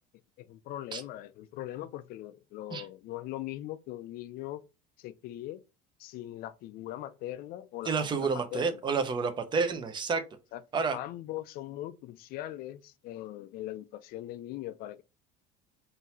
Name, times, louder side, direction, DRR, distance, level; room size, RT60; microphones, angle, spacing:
voice 1, 0.4-4.6 5.0-5.6 6.0-8.8 10.5-10.6 10.9-15.0, left 14 dB, 55° left, 0.4 m, -40 dB
voice 2, 7.9-10.2 10.7-11.0, right 5 dB, 25° right, 0.7 m, -29 dB
3.8 x 2.8 x 4.2 m
cardioid pair, 135°, 18 cm